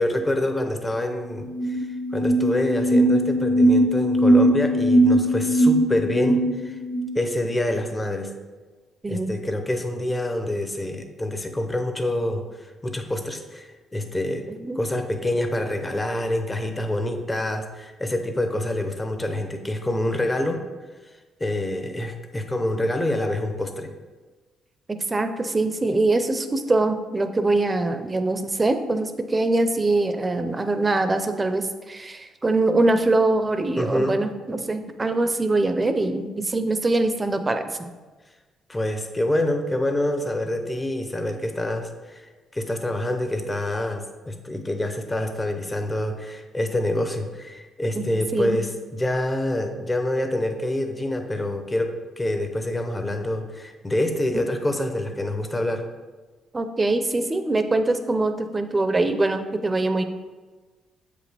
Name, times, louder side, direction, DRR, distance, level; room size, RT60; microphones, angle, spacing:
voice 1, 0.0-6.8 7.1-8.3 9.1-14.4 14.8-20.6 21.4-23.9 33.8-34.2 38.7-55.8, left 1 dB, 20° left, 5 dB, 0.7 m, -26 dB
sound 1, 1.1-1.2 1.4-7.2, right 1 dB, 85° left, 1.3 m, -20 dB
voice 2, 24.9-37.9 48.0-48.1 48.3-48.6 54.3-54.4 56.5-60.0, right 2 dB, 25° right, 8 dB, 0.6 m, -23 dB
7.2 x 5.1 x 3.4 m, 1.3 s
cardioid pair, 90°, 0 cm